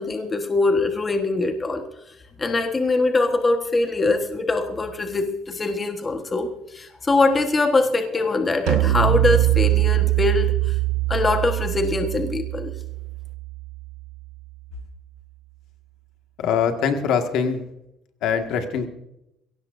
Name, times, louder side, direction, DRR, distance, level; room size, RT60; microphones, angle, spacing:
voice 1, 0.0-1.8 2.4-10.8 11.1-12.7, left 3 dB, 20° left, 5 dB, 1.3 m, -23 dB
sound 1, 8.7-14.1, right 18 dB, 80° right, 0.5 m, -22 dB
voice 2, 16.4-17.6 18.2-18.9, left 7 dB, 65° left, 5 dB, 1.8 m, -23 dB
22.0 x 17.5 x 2.6 m, 0.85 s
cardioid pair, 145°, 0 cm